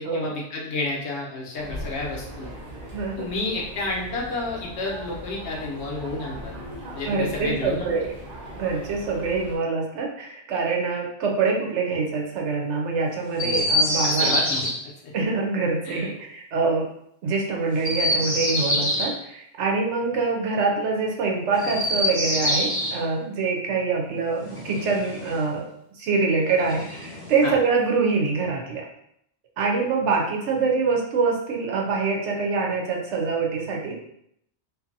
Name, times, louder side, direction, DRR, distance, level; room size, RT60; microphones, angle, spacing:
voice 1, 0.0-2.5 3.2-6.5 6.9-7.9 13.4-13.7 14.0-14.7 15.9-16.1 27.4-27.5, left 2 dB, 75° left, -2 dB, 1.0 m, -30 dB
sound 1, 1.6-9.6, equal, 50° right, 0.9 m, -39 dB
voice 2, 2.9-3.3 7.1-8.1 8.5-14.4 15.1-16.9 17.2-25.7 26.0-28.8 29.6-34.0, right 4 dB, 90° right, 0 dB, 1.0 m, -25 dB
Chirp tweet, 13.3-14.7 17.7-19.1 21.5-23.0 24.4-25.5 26.6-27.5, left 1 dB, 25° left, 0.7 m, -25 dB
2.6 x 2.6 x 2.5 m, 0.72 s
omnidirectional pair, 1.2 m